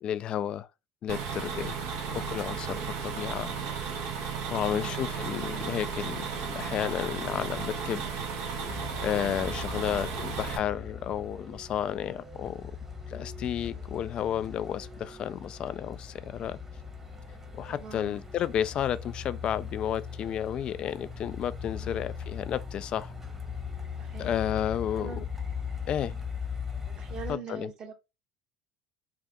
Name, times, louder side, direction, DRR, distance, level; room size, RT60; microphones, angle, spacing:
voice 1, 0.0-0.7 1.0-1.8 2.1-3.5 4.5-8.1 9.0-12.7 13.1-16.6 17.6-23.1 24.2-25.1 25.9-26.1 27.3-27.7, left 10 dB, 45° left, 0.3 m, -32 dB
sound 1, 1.1-10.6, right 6 dB, 65° right, 1.0 m, -34 dB
voice 2, 4.6-5.1 13.7-14.0 17.7-18.2 21.8-22.0 23.9-24.3 24.9-25.2 26.0-26.2 27.0-27.9, right 6 dB, 40° right, 1.5 m, -45 dB
Truck, 8.7-27.3, left 6 dB, 15° right, 1.2 m, -39 dB
3.4 x 2.5 x 3.7 m
figure-of-eight pair, 65°, 2 cm